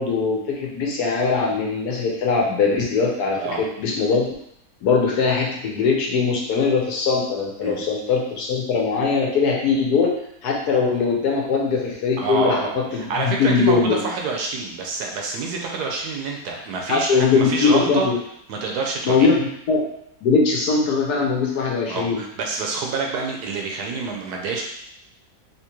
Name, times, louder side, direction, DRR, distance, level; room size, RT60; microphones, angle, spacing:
voice 1, 0.0-4.3 4.8-10.1 10.4-14.0 16.9-18.2 19.1-19.8 20.2-22.2, left 4 dB, 70° left, -1 dB, 1.1 m, -21 dB
voice 2, 12.2-18.1 18.5-19.3 21.9-24.6, right 4 dB, 70° right, 1 dB, 1.1 m, -27 dB
3.6 x 2.9 x 2.9 m, 0.74 s
omnidirectional pair, 1.9 m